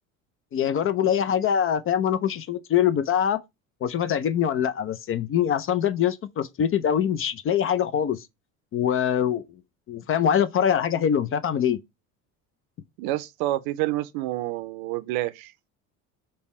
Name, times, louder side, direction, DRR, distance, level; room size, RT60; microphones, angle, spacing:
voice 1, 0.5-3.4 3.8-8.3 8.7-9.4 9.9-11.8, left 9 dB, 35° left, 0.4 m, -23 dB
voice 2, 13.0-15.5, right 16 dB, 65° right, 0.6 m, -28 dB
5.3 x 2.2 x 4.1 m
hypercardioid pair, 70°, 41 cm